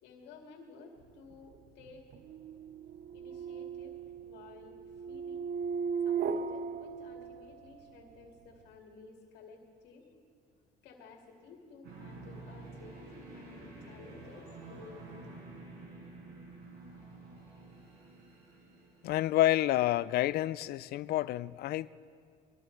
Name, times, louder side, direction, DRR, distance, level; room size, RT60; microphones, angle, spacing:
voice 1, 0.0-2.1 3.1-5.5 6.0-10.1 10.8-15.5, left 4 dB, 85° left, 2.3 m, -54 dB
sound 1, 1.3-7.8, right 6 dB, 60° right, 0.7 m, -37 dB
sound 2, 11.8-20.5, right 2 dB, 75° right, 5.0 m, -50 dB
voice 2, 19.0-21.9, left 14 dB, 70° left, 0.4 m, -29 dB
22.0 x 14.0 x 4.6 m
cardioid pair, 110°, 17 cm